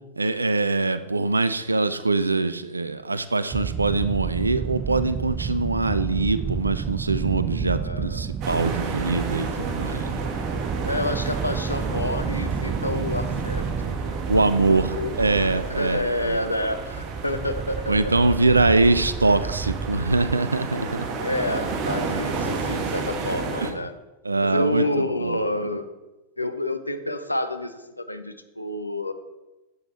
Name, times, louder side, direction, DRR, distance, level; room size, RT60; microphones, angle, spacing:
voice 1, 0.2-10.2 14.3-16.4 17.9-21.1 23.6-23.7 24.2-25.4, right 3 dB, 80° right, 13 dB, 0.6 m, -23 dB
sound 1, 3.5-20.3, right 6 dB, 20° right, 0.4 m, -31 dB
voice 2, 7.8-8.3 10.8-13.9 14.7-15.2 15.5-18.3 21.2-23.9 24.4-25.9 26.4-29.1, left 1 dB, 85° left, 9 dB, 0.9 m, -29 dB
sound 2, 8.4-23.7, right 4 dB, 40° right, 1.7 m, -32 dB
11.5 x 8.1 x 4.3 m, 1.1 s
figure-of-eight pair, 90°, 0 cm